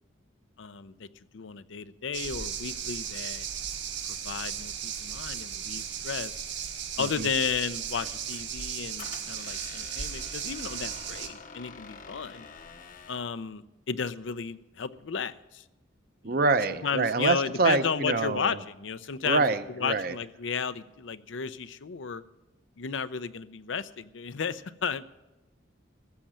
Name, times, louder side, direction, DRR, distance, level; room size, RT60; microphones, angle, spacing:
voice 1, 0.6-1.1 1.3-3.5 4.1-6.4 7.0-12.5 13.1-15.6 16.2-16.3 16.8-19.4 19.8-22.2 22.8-25.0, left 6 dB, 80° left, 14 dB, 0.6 m, -33 dB
sound 1, 2.1-11.3, right 8 dB, 70° right, 1.4 m, -36 dB
voice 2, 7.0-7.3 16.2-18.6 19.2-20.2, right 3 dB, 50° right, 11 dB, 0.7 m, -26 dB
Squeak, 8.0-13.3, left 5 dB, 45° left, 0.8 m, -48 dB
14.5 x 7.4 x 8.8 m, 1.0 s
head